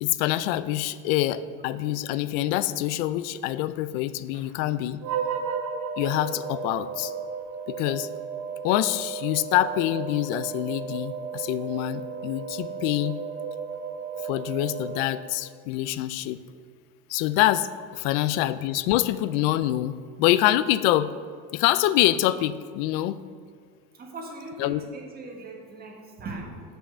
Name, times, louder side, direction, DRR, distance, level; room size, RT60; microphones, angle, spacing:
voice 1, 0.0-5.0 6.0-7.1 7.7-8.1 8.6-13.2 14.2-16.4 17.1-21.1 21.5-23.2 24.6-24.8, left 14 dB, 85° left, 15 dB, 0.5 m, -25 dB
sound 1, 5.0-15.6, right 6 dB, 50° right, 1.1 m, -34 dB
voice 2, 23.9-26.6, right 2 dB, 25° right, 0 dB, 1.6 m, -40 dB
7.5 x 5.7 x 6.5 m, 2.1 s
cardioid pair, 150°, 36 cm